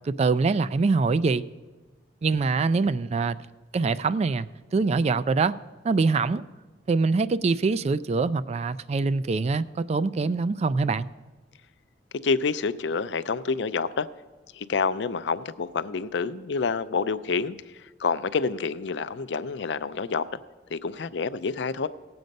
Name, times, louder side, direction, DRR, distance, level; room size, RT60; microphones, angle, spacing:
voice 1, 0.1-1.4 2.2-3.4 3.7-4.5 4.7-5.6 5.8-6.4 6.9-11.1, right 4 dB, 35° right, 15 dB, 0.3 m, -24 dB
voice 2, 12.2-14.1 14.5-17.6 18.0-20.2 20.7-21.9, left 5 dB, 70° left, 14 dB, 0.5 m, -28 dB
17.5 x 7.8 x 5.3 m, 1.3 s
head